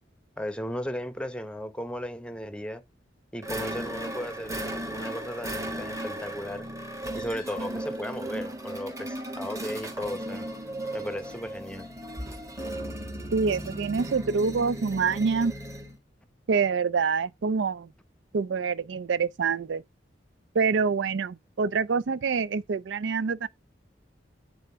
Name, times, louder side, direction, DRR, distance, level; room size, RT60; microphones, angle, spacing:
voice 1, 0.4-2.8 3.3-6.7 7.1-10.5 10.9-11.9, equal, 5° left, 0.8 m, -36 dB
sound 1, 3.4-16.0, right 1 dB, 15° right, 1.5 m, -36 dB
voice 2, 13.3-15.5 16.5-17.9 18.3-19.8 20.5-23.5, right 5 dB, 80° right, 0.4 m, -26 dB
9.0 x 3.7 x 5.5 m
head